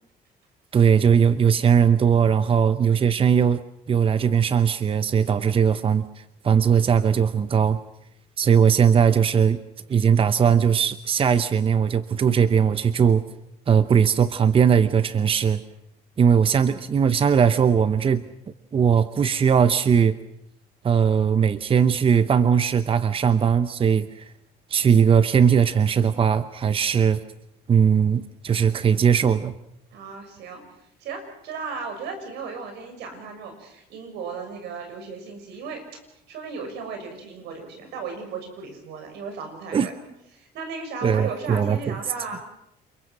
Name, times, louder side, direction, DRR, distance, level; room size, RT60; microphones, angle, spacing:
voice 1, 0.7-3.6 3.9-7.8 8.4-9.6 9.9-13.2 13.7-15.6 16.2-18.2 18.7-20.2 20.8-24.3 24.7-27.2 27.7-29.5 39.7-39.9 41.0-41.9, right 7 dB, 35° right, 12 dB, 0.8 m, -19 dB
voice 2, 2.1-2.6 16.4-16.7 29.9-30.6 31.0-35.8 36.3-40.0 40.3-42.4, right 5 dB, 80° right, 5 dB, 6.6 m, -36 dB
29.0 x 22.0 x 6.2 m, 0.81 s
cardioid pair, 110°, 17 cm